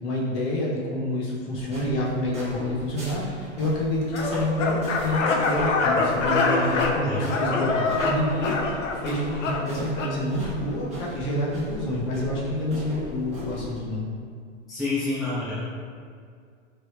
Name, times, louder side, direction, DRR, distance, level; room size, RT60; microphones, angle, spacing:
voice 1, 0.0-14.1, left 1 dB, 35° left, -3 dB, 0.8 m, -28 dB
sound 1, 1.5-13.8, right 1 dB, 20° right, 1.1 m, -39 dB
sound 2, 4.1-10.2, left 3 dB, 80° left, 0.6 m, -25 dB
voice 2, 14.7-15.6, left 3 dB, ahead, -12 dB, 0.3 m, -28 dB
3.1 x 2.5 x 3.3 m, 2.1 s
hypercardioid pair, 110°, 37 cm